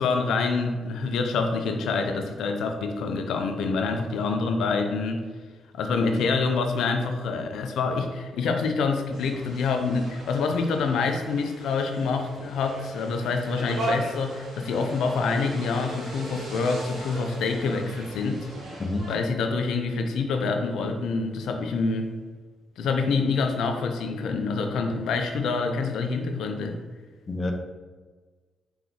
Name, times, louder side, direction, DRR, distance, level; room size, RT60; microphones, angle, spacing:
voice 1, 0.0-5.3 5.7-18.5 19.1-22.1 22.8-26.8, left 4 dB, 80° left, 5 dB, 0.5 m, -26 dB
wildwood tramcarpassing nowarning, 9.1-19.1, right 1 dB, 85° right, 1.5 m, -38 dB
voice 2, 18.8-19.1 27.3-27.5, left 2 dB, 35° left, 4 dB, 0.6 m, -28 dB
3.9 x 3.8 x 3.0 m, 1.4 s
supercardioid pair, 60°, 0 cm